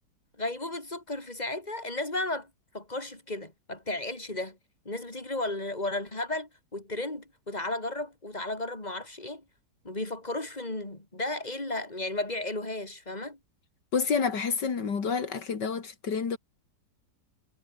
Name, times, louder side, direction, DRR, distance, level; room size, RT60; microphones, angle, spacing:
voice 1, 0.4-4.6 4.8-9.4 9.8-13.4, left 2 dB, 25° left, 4.8 m, -34 dB
voice 2, 13.9-16.4, left 5 dB, 85° left, 2.9 m, -29 dB
omnidirectional pair, 1.8 m